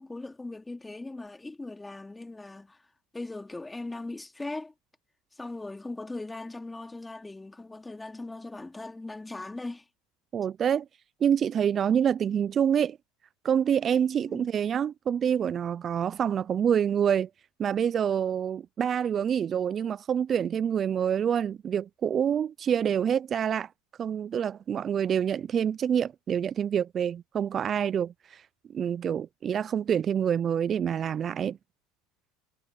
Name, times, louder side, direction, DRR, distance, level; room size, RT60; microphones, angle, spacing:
voice 1, 0.0-2.8 3.1-4.7 5.3-9.9 14.3-14.5, left 2 dB, 10° left, 2.9 m, -39 dB
voice 2, 10.3-10.9 11.2-13.0 13.4-17.3 17.6-23.7 24.0-28.4 28.7-31.6, right 8 dB, 35° right, 0.4 m, -27 dB
hypercardioid pair, 95°, 0 cm